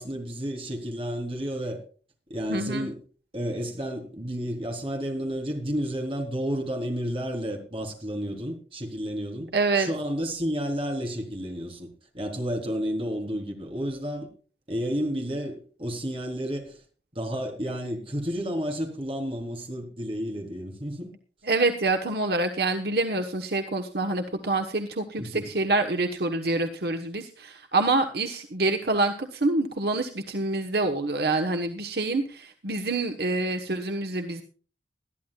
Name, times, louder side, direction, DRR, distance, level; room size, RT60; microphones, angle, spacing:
voice 1, 0.0-1.8 2.3-3.0 3.3-11.9 12.1-14.3 14.7-16.8 17.1-21.1 25.2-25.5, equal, 30° right, 3.8 m, -31 dB
voice 2, 2.5-2.9 9.5-9.9 21.4-34.4, right 2 dB, 60° right, 1.2 m, -26 dB
20.5 x 13.5 x 2.4 m
head